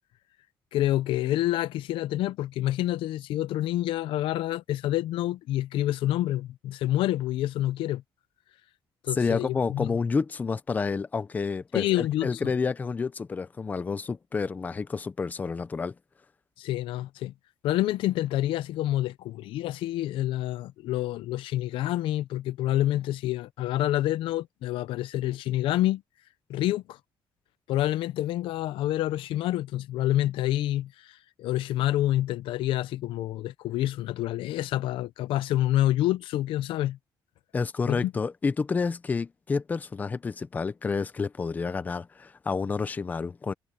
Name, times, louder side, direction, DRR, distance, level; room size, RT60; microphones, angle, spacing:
voice 1, 0.7-8.0 9.0-10.0 11.7-12.4 16.6-17.3 17.6-26.0 26.5-27.0 27.7-37.0 37.9-38.1, left 14 dB, 80° left, 0.7 m, -28 dB
voice 2, 9.1-15.9 37.5-43.5, left 4 dB, 20° left, 0.6 m, -29 dB
cardioid pair, 165°, 9 cm